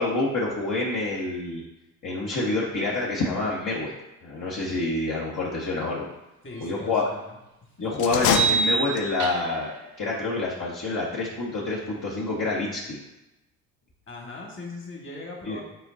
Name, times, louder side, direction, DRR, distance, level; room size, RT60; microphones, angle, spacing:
voice 1, 0.0-1.6 2.0-3.9 4.2-6.1 6.6-7.1 7.8-9.7 10.0-13.0 15.4-15.6, left 2 dB, 45° left, -6 dB, 1.5 m, -27 dB
voice 2, 6.4-7.3 14.1-15.6, left 3 dB, 30° left, -1 dB, 2.0 m, -39 dB
sound 1, 6.6-6.7 8.3-9.7, right 5 dB, 45° right, 0.8 m, -26 dB
sound 2, 7.9-9.3, left 7 dB, 60° left, 0.8 m, -26 dB
8.2 x 4.6 x 2.8 m, 0.95 s
hypercardioid pair, 65°, 42 cm